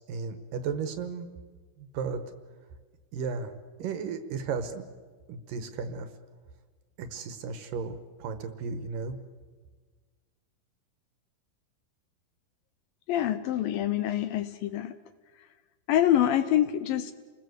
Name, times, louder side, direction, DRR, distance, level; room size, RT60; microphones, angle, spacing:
voice 1, 0.1-1.3 1.8-2.2 3.1-3.5 3.8-4.8 5.3-6.1 7.0-9.2, right 5 dB, 65° right, 10 dB, 2.6 m, -34 dB
voice 2, 13.1-14.9 15.9-17.1, left 11 dB, 75° left, 11 dB, 2.3 m, -25 dB
30.0 x 19.5 x 8.0 m, 1.5 s
omnidirectional pair, 4.7 m